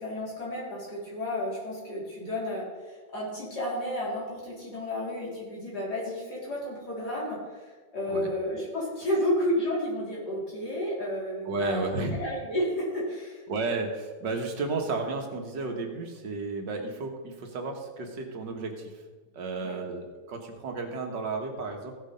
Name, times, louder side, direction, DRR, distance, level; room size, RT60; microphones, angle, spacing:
voice 1, 0.0-13.4 19.6-19.8, left 1 dB, 65° left, -6 dB, 4.5 m, -32 dB
voice 2, 11.5-12.2 13.5-18.9 19.3-21.9, right 3 dB, 80° right, 3 dB, 2.1 m, -33 dB
15.5 x 6.5 x 5.2 m, 1.4 s
omnidirectional pair, 1.9 m